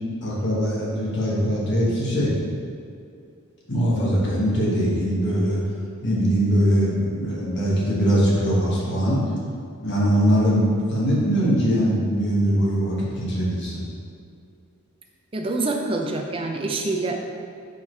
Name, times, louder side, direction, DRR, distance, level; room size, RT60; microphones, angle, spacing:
voice 1, 0.2-2.3 3.7-5.6 6.0-9.2 9.8-13.8, equal, 50° left, -6 dB, 1.3 m, -21 dB
voice 2, 15.3-17.4, right 2 dB, 25° right, 2 dB, 0.5 m, -26 dB
5.6 x 4.7 x 4.4 m, 2.4 s
head